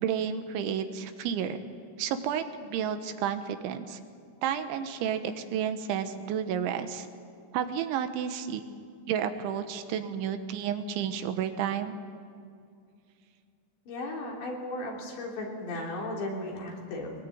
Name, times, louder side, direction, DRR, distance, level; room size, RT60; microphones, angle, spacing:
voice 1, 0.0-1.6 2.0-4.0 4.4-7.1 7.5-8.6 9.1-12.0, right 8 dB, 75° right, 9 dB, 3.3 m, -31 dB
voice 2, 13.9-17.1, left 1 dB, 65° left, -1 dB, 5.5 m, -35 dB
22.5 x 20.5 x 8.6 m, 2.3 s
omnidirectional pair, 5.6 m